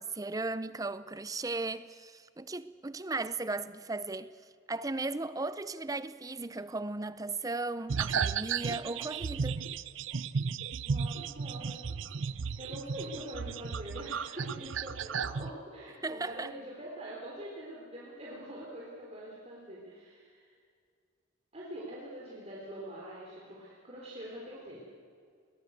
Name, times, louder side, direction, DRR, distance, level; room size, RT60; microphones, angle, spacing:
voice 1, 0.0-4.4 4.7-9.6 16.0-16.5, right 3 dB, 20° right, 0.6 m, -36 dB
sound 1, 7.9-15.5, right 6 dB, 80° right, 0.6 m, -34 dB
voice 2, 10.8-11.8 12.3-20.5 21.5-24.8, right 1 dB, 35° right, 3.9 m, -44 dB
21.0 x 19.5 x 8.1 m
head